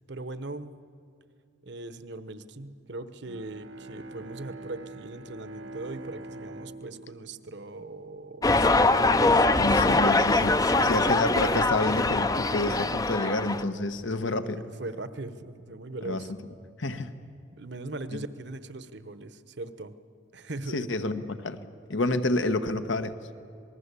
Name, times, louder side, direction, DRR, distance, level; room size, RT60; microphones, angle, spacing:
voice 1, 0.1-0.8 1.6-10.0 10.6-11.2 14.4-14.5 14.8-16.3 17.6-19.9 20.3-20.8, right 2 dB, 60° right, 12 dB, 1.1 m, -40 dB
Bowed string instrument, 3.2-8.5, right 2 dB, 90° right, 1.7 m, -45 dB
sound 1, 8.4-13.6, left 2 dB, 20° left, 0.6 m, -23 dB
voice 2, 9.6-14.7 16.0-16.2 16.8-17.1 20.7-21.6 21.9-23.1, left 2 dB, 75° left, 9 dB, 1.3 m, -29 dB
27.0 x 20.0 x 8.3 m, 2.4 s
head